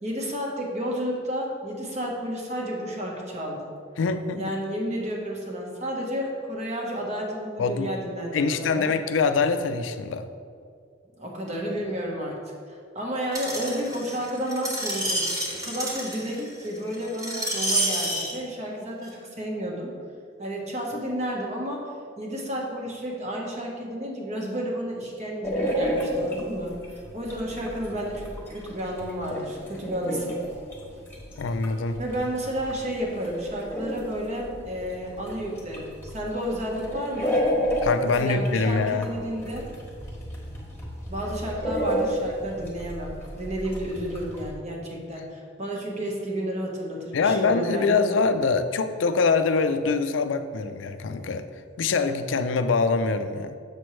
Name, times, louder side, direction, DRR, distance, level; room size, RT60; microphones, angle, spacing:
voice 1, 0.0-3.7 4.4-8.9 11.2-19.9 20.4-30.4 32.0-37.4 38.1-39.7 41.1-48.0, equal, 40° right, -1 dB, 1.1 m, -31 dB
voice 2, 4.0-4.6 7.6-7.9 8.3-10.3 31.4-32.0 37.8-39.1 47.1-51.4 51.8-53.5, left 4 dB, 85° left, 9 dB, 0.4 m, -24 dB
Screech, 13.3-18.3 19.0-19.1, right 1 dB, 20° right, 1.3 m, -29 dB
sound 1, 25.4-44.5, equal, 10° left, 1.3 m, -32 dB
7.0 x 6.1 x 3.1 m, 2.3 s
head